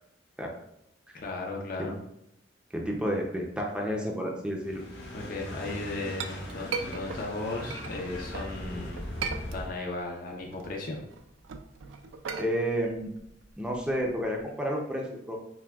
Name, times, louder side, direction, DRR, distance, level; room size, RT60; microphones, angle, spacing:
voice 1, 1.1-2.0 5.1-9.1 9.5-11.0, left 2 dB, 50° left, 0 dB, 0.6 m, -36 dB
voice 2, 2.7-4.8 12.4-13.1 13.6-15.4, equal, 5° right, -1 dB, 0.5 m, -30 dB
sound 1, 4.6-9.8, left 1 dB, 65° left, 1.0 m, -39 dB
Chink clink, 5.8-8.5 9.0-10.0 10.3-14.4, right 5 dB, 90° right, 0.4 m, -38 dB
5.8 x 2.2 x 2.3 m, 0.79 s
head